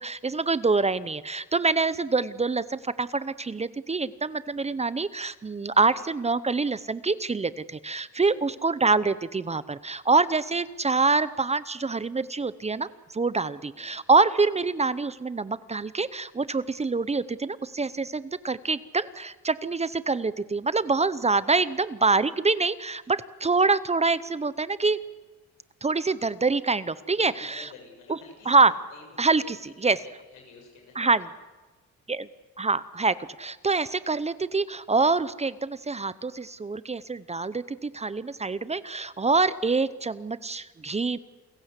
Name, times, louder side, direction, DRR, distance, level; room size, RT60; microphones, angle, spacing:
voice 1, 0.0-12.9 13.1-25.0 25.8-27.7 28.5-28.7 29.2-30.0 31.0-31.2 32.1-32.3 32.6-41.2, right 4 dB, 20° right, 16 dB, 0.7 m, -25 dB
voice 2, 27.1-31.1, left 5 dB, 90° left, 2 dB, 7.4 m, -50 dB
28.5 x 15.5 x 8.2 m, 1.2 s
cardioid pair, 90°, 30 cm